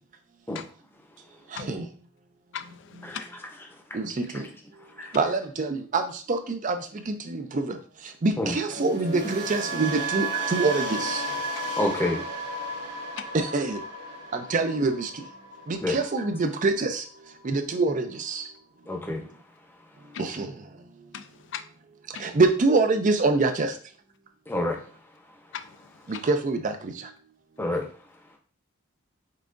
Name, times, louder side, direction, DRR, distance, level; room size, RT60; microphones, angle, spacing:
voice 1, 2.5-3.2 11.6-11.8 20.1-20.3 21.1-21.6 22.1-22.2 25.5-26.3, left 8 dB, 60° left, 9 dB, 0.4 m, -39 dB
voice 2, 3.9-4.4 5.1-6.8 7.1-7.8 8.2-11.2 13.3-13.8 14.3-15.1 15.7-17.0 17.4-18.4 20.2-20.5 22.2-23.7 26.2-26.9, right 3 dB, 40° right, 7 dB, 0.4 m, -25 dB
sound 1, 8.7-16.8 17.1-17.4, right 2 dB, 60° right, 1.6 m, -33 dB
voice 3, 11.8-12.3 15.8-16.0 18.9-19.3 20.0-20.1 24.5-25.4 27.6-27.9, left 1 dB, 10° left, 2 dB, 0.7 m, -29 dB
5.6 x 3.5 x 2.5 m, 0.43 s
head